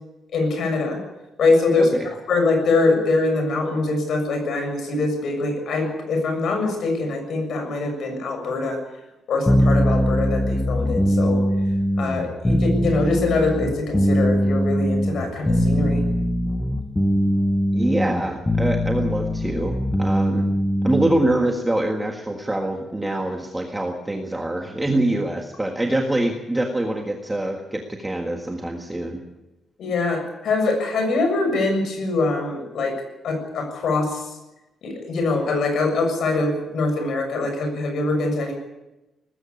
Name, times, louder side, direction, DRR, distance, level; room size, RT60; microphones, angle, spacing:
voice 1, 0.3-1.0 1.4-8.8 9.3-11.4 12.0-16.0 29.8-33.0 33.2-34.3 34.8-38.5, left 3 dB, 55° left, 5 dB, 6.9 m, -23 dB
sound 1, 9.5-21.3, equal, 10° left, 1.4 m, -21 dB
voice 2, 17.7-20.5 20.8-29.2, right 1 dB, 10° right, 2 dB, 1.6 m, -24 dB
19.5 x 16.0 x 9.7 m, 1.0 s
cardioid pair, 175°, 0 cm